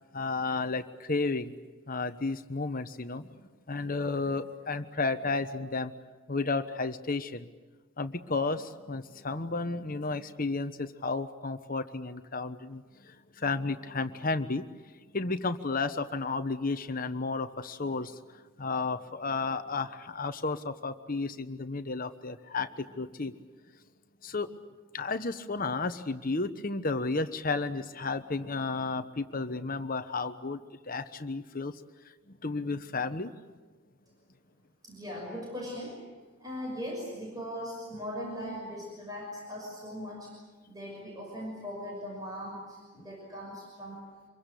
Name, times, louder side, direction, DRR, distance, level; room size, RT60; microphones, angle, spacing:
voice 1, 0.1-1.5 1.9-5.9 6.3-7.5 8.0-14.7 15.1-18.2 18.6-23.4 24.2-24.5 24.9-30.6 30.9-31.7 32.3-33.3 43.0-43.1, left 3 dB, 40° left, 10 dB, 1.1 m, -32 dB
voice 2, 34.8-36.0 36.4-40.4 40.7-44.1, equal, 15° right, -2 dB, 6.1 m, -39 dB
26.0 x 22.5 x 8.5 m, 1.3 s
head